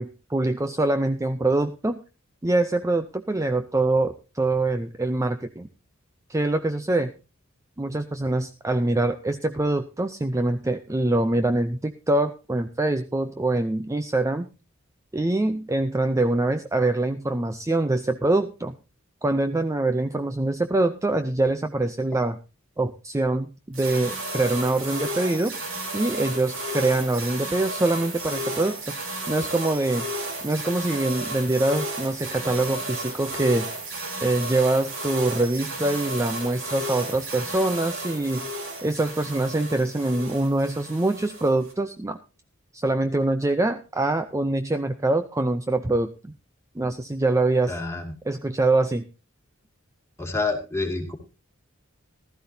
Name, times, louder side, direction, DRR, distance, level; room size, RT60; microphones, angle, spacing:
voice 1, 0.0-2.0 2.4-5.7 6.3-7.1 7.8-14.5 15.1-18.7 19.2-22.4 22.8-25.6 25.9-29.0 29.3-30.1 30.4-33.7 34.2-38.5 38.8-42.2 42.7-46.3 46.8-47.8 48.3-49.1, right 2 dB, 15° right, 9 dB, 0.5 m, -24 dB
sound 1, 23.7-41.7, right 1 dB, 65° right, 3.7 m, -33 dB
voice 2, 47.7-48.1 50.2-51.2, left 3 dB, 15° left, 2 dB, 2.2 m, -28 dB
15.5 x 13.0 x 2.7 m, 0.30 s
head